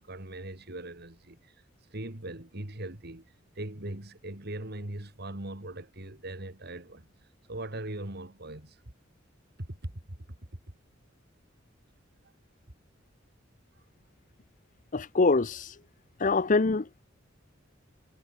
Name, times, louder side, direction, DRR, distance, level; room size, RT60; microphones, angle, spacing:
voice 1, 0.0-1.5 1.9-7.1 7.5-8.8 9.6-10.2, right 1 dB, 55° right, 2.8 m, -40 dB
voice 2, 14.9-15.8 16.2-16.9, left 3 dB, 40° left, 0.7 m, -24 dB
head